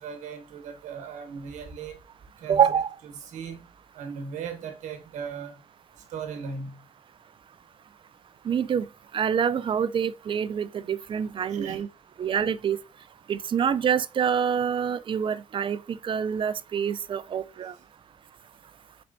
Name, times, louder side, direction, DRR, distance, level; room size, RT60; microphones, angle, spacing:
voice 1, 0.0-2.0 2.4-2.8 3.3-3.6 4.0-5.5 6.1-6.7 11.5-11.8, right 6 dB, 85° right, 1.1 m, -37 dB
voice 2, 2.5-2.9 8.5-8.8 9.1-11.9 12.2-12.8 13.3-15.8 16.0-17.7, right 8 dB, 45° right, 0.4 m, -26 dB
4.3 x 4.2 x 2.6 m
cardioid pair, 80°, 12 cm